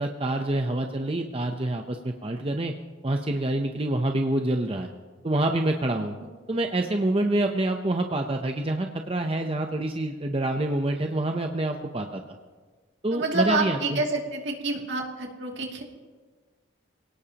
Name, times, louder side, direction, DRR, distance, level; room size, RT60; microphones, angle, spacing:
voice 1, 0.0-2.7 3.0-4.9 5.2-6.2 6.5-12.2 13.0-14.0, right 1 dB, 30° right, 4 dB, 0.7 m, -27 dB
voice 2, 13.1-15.8, right 3 dB, 65° right, 0 dB, 2.6 m, -28 dB
27.0 x 18.0 x 2.9 m, 1.4 s
head